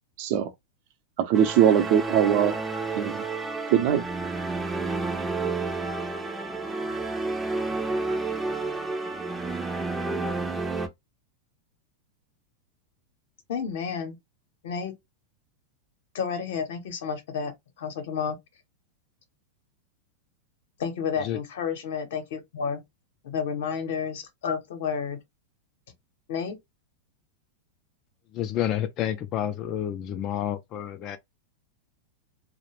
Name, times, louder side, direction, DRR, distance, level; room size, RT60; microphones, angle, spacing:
voice 1, 0.2-0.5 1.2-2.6 3.0-3.2 3.7-4.0, right 9 dB, 55° right, 0.6 m, -21 dB
sound 1, 1.3-10.9, right 3 dB, 10° right, 0.5 m, -30 dB
voice 2, 13.5-14.2 14.6-15.0 16.1-18.4 20.8-22.8 23.2-25.2 26.3-26.6, left 6 dB, 65° left, 0.8 m, -31 dB
voice 3, 28.3-31.2, left 11 dB, 40° left, 0.3 m, -29 dB
2.3 x 2.1 x 3.1 m
hypercardioid pair, 100°, 0 cm